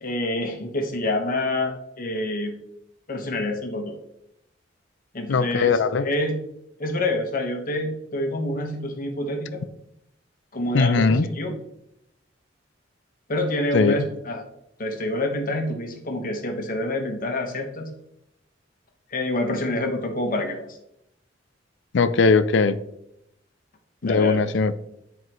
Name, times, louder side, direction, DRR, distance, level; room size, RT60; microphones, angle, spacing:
voice 1, 0.0-2.6 3.1-4.0 5.1-6.4 6.8-9.6 10.5-11.6 13.3-14.4 14.8-17.9 19.1-20.8 24.0-24.4, left 1 dB, 45° left, 4 dB, 1.1 m, -27 dB
voice 2, 5.3-6.1 10.7-11.3 13.7-14.0 21.9-22.8 24.0-24.7, left 4 dB, 70° left, 13 dB, 0.5 m, -20 dB
9.8 x 4.6 x 3.0 m, 0.79 s
head